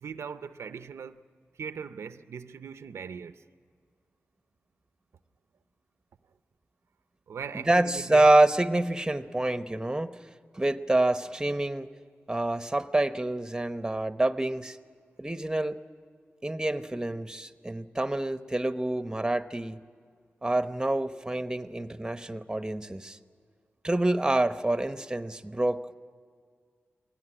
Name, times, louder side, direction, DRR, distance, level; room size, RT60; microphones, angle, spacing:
voice 1, 0.0-1.2 1.6-3.4 7.3-8.3, right 6 dB, 90° right, 0.6 m, -40 dB
voice 2, 7.5-10.2 10.5-11.9 12.3-14.8 15.2-15.8 16.4-19.8 20.4-23.2 23.8-25.9, right 2 dB, 15° right, 0.9 m, -27 dB
22.0 x 17.5 x 9.9 m
cardioid pair, 55°, 4 cm